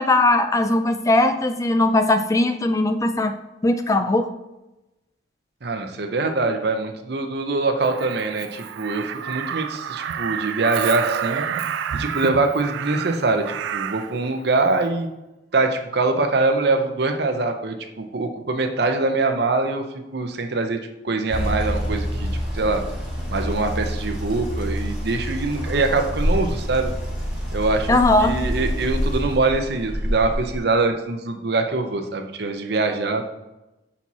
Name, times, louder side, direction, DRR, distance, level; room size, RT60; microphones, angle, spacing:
voice 1, 0.0-3.3 3.6-4.3 27.9-28.3, left 2 dB, 20° left, 8 dB, 0.3 m, -19 dB
voice 2, 5.6-11.4 11.9-15.1 15.5-19.8 20.1-20.8 21.0-22.3 22.5-22.8 23.3-26.9 27.5-28.0 28.2-33.2, right 3 dB, 60° right, 6 dB, 0.7 m, -23 dB
Crow, 7.8-14.2 15.6-15.8, right 8 dB, 80° right, 0.3 m, -29 dB
sound 1, 21.3-30.6, equal, 5° right, 1.9 m, -27 dB
6.0 x 4.4 x 4.1 m, 0.99 s
head